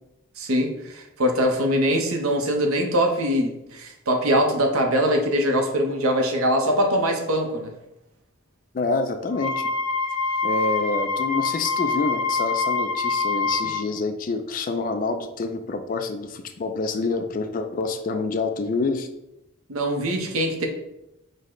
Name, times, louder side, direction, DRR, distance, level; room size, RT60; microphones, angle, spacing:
voice 1, 0.4-7.7 13.6-13.7 19.7-20.7, equal, 80° right, 3 dB, 0.7 m, -22 dB
voice 2, 8.7-9.7 10.4-19.1, left 3 dB, 40° left, 7 dB, 0.3 m, -27 dB
Wind instrument woodwind instrument, 9.3-13.8, left 4 dB, 90° left, 0.9 m, -25 dB
5.1 x 2.1 x 3.7 m, 0.89 s
head